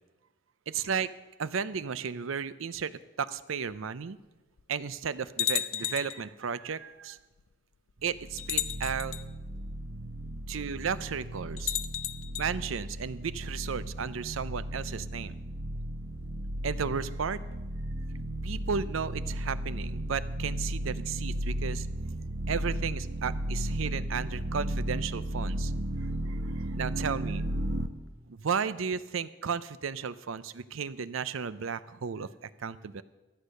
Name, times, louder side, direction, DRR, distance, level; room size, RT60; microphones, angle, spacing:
voice 1, 0.7-1.1 1.4-2.9 3.2-4.2 4.7-7.2 8.0-9.1 10.5-11.7 12.4-15.3 16.6-17.4 18.4-21.9 22.5-25.7 26.3-27.4 28.3-33.0, right 6 dB, 90° right, 15 dB, 0.5 m, -34 dB
sound 1, 3.7-3.8 4.6-4.7 5.4-6.2 7.4-7.5 8.4-9.2 11.6-12.5, left 12 dB, 90° left, 0.5 m, -32 dB
sound 2, 8.0-27.9, right 1 dB, 55° right, 0.8 m, -35 dB
13.5 x 8.2 x 6.5 m, 1.1 s
head